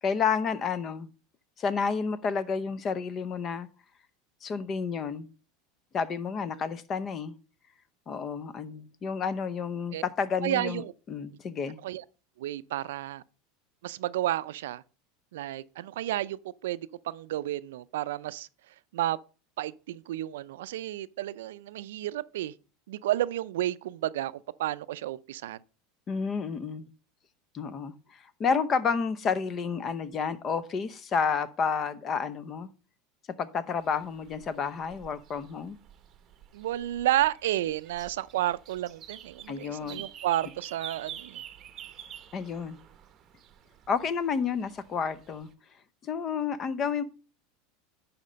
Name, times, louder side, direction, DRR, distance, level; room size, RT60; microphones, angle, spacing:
voice 1, 0.0-1.1 1.6-3.7 4.4-5.3 5.9-7.3 8.1-11.8 26.1-26.9 27.5-32.7 33.4-35.8 39.5-40.0 42.3-42.8 43.9-45.5 46.0-47.0, left 6 dB, 30° left, 0.7 m, -30 dB
voice 2, 10.4-10.9 11.8-12.0 12.4-13.2 13.8-14.8 15.3-18.5 18.9-19.2 19.6-22.5 22.9-24.3 24.6-25.6 36.5-41.4, right 14 dB, 85° right, 0.4 m, -31 dB
sound 1, 33.7-45.5, right 10 dB, 35° right, 0.8 m, -48 dB
11.0 x 4.3 x 5.1 m
supercardioid pair, 135°, 0 cm